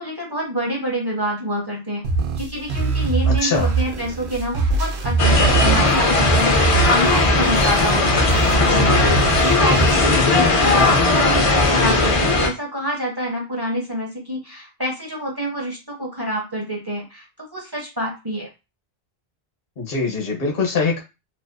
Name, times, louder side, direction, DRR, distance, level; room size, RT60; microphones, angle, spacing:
voice 1, 0.0-2.1 2.4-8.3 8.7-18.5, equal, 25° right, -2 dB, 0.7 m, -27 dB
sound 1, 2.0-10.0, right 4 dB, 90° right, 0.8 m, -23 dB
voice 2, 3.2-3.7 19.8-21.0, left 4 dB, 65° left, 0 dB, 1.0 m, -23 dB
sound 2, 5.2-12.5, left 3 dB, 45° left, 0.5 m, -17 dB
2.5 x 2.4 x 2.2 m, 0.26 s
omnidirectional pair, 1.0 m